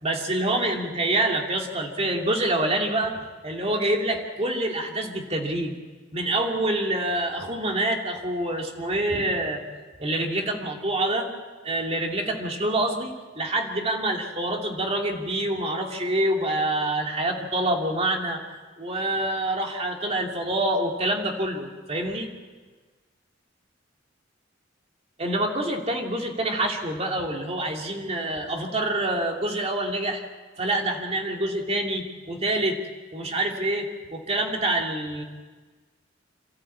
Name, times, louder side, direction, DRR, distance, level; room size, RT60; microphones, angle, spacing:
voice 1, 0.0-3.1 3.4-5.7 6.1-9.6 10.0-11.3 11.6-18.4 18.8-22.3 25.2-30.2 30.6-32.8 33.1-35.2, right 1 dB, 30° right, 1 dB, 2.7 m, -26 dB
27.5 x 14.0 x 8.6 m, 1.4 s
head